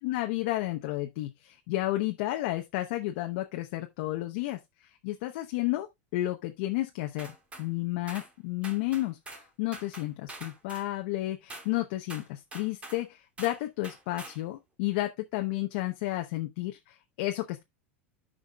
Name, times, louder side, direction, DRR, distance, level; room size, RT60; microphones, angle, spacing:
voice 1, 0.0-5.9 6.1-17.6, left 17 dB, 70° left, 0.9 m, -32 dB
sound 1, 7.2-7.7 8.1-8.3 8.6-9.5 9.7-10.9 11.5-11.7 12.1-13.0 13.4-13.6 13.8-14.4, right 2 dB, 20° right, 2.6 m, -45 dB
14.0 x 5.1 x 2.3 m
supercardioid pair, 110°, 6 cm